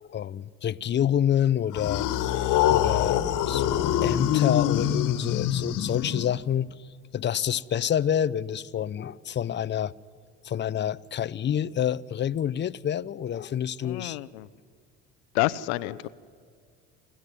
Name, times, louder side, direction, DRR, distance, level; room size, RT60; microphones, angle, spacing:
voice 1, 0.0-2.1 2.7-3.2 3.5-6.7 7.1-9.9 10.4-14.2, left 9 dB, 35° left, 0.7 m, -27 dB
sound 1, 1.7-6.5, left 11 dB, 65° left, 1.6 m, -25 dB
voice 2, 13.8-14.5 15.3-16.1, left 18 dB, 80° left, 0.8 m, -28 dB
28.0 x 13.5 x 10.0 m
hypercardioid pair, 75°, 33 cm